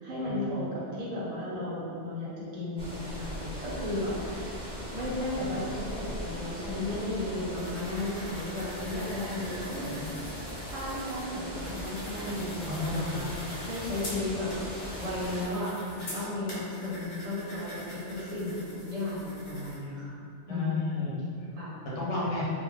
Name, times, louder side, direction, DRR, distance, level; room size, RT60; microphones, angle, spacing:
voice 1, 0.0-4.6 4.9-10.2 10.7-20.1 20.5-20.8 21.5-21.8 22.1-22.4, left 1 dB, 40° right, -7 dB, 0.7 m, -34 dB
sound 1, 2.8-15.4, equal, 10° left, 0.4 m, -39 dB
sound 2, 7.6-19.8, equal, 65° left, 1.0 m, -45 dB
voice 2, 9.8-10.2 12.6-13.2 20.5-21.5 22.0-22.5, left 2 dB, 90° left, -5 dB, 1.0 m, -33 dB
2.6 x 2.0 x 3.1 m, 2.4 s
omnidirectional pair, 1.2 m